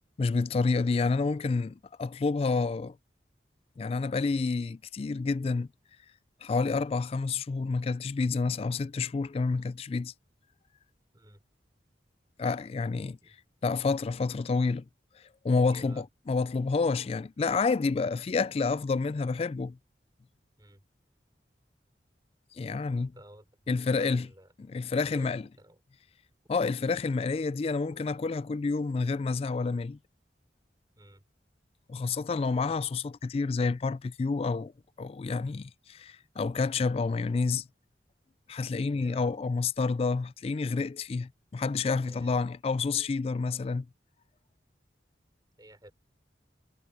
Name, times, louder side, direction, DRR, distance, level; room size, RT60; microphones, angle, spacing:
voice 1, 0.2-3.0 3.8-5.7 6.4-10.1 12.4-13.2 13.6-14.8 15.4-19.8 22.5-23.1 23.7-24.3 24.6-25.5 26.5-30.0 31.9-34.7 35.0-37.7 38.5-43.9, left 4 dB, 35° left, 0.3 m, -29 dB
voice 2, 15.6-16.0 20.6-20.8 22.9-24.5 25.1-25.8 31.0-31.2 38.9-39.3 42.1-42.4 45.6-45.9, right 1 dB, 25° right, 4.4 m, -53 dB
head